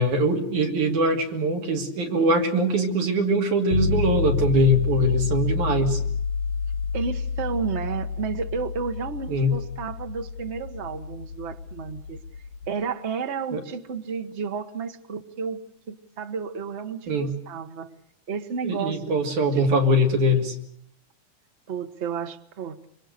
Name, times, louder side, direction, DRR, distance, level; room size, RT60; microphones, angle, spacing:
voice 1, 0.0-6.0 9.3-9.6 13.5-13.6 17.1-17.3 18.6-20.6, equal, 80° right, 3 dB, 4.1 m, -22 dB
sound 1, 3.7-12.7, left 5 dB, 65° left, 3.0 m, -29 dB
voice 2, 6.9-12.2 12.7-17.9 18.3-19.2 19.5-19.7 21.7-22.9, right 6 dB, 50° right, 7 dB, 0.8 m, -32 dB
26.0 x 24.0 x 6.7 m, 0.68 s
omnidirectional pair, 3.4 m